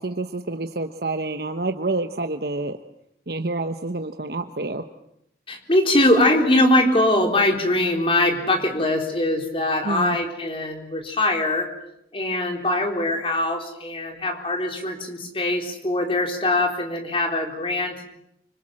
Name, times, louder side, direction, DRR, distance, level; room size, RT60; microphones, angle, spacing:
voice 1, 0.0-2.8 3.3-4.9 9.8-10.2, right 2 dB, 60° right, 7 dB, 1.1 m, -28 dB
voice 2, 5.5-11.7 12.1-18.0, left 1 dB, 30° left, 3 dB, 4.0 m, -22 dB
26.0 x 25.5 x 7.7 m, 0.77 s
head